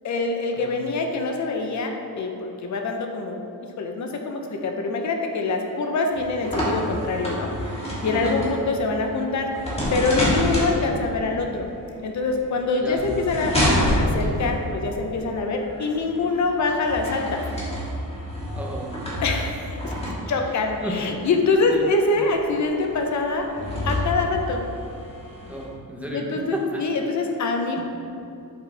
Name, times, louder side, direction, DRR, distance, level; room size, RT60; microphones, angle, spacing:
voice 1, 0.0-7.8 8.0-9.5 9.9-11.7 12.0-17.4 19.2-23.5 23.8-24.6 26.1-27.8, left 3 dB, 55° left, 3 dB, 0.8 m, -25 dB
sound 1, 6.1-25.6, equal, 15° left, 1.6 m, -29 dB
voice 2, 18.5-18.9 20.8-21.0 21.7-21.9 25.5-26.8 27.8-27.9, right 1 dB, 5° right, -3 dB, 0.9 m, -33 dB
8.0 x 5.9 x 3.4 m, 2.7 s
wide cardioid pair, 170°, 35 cm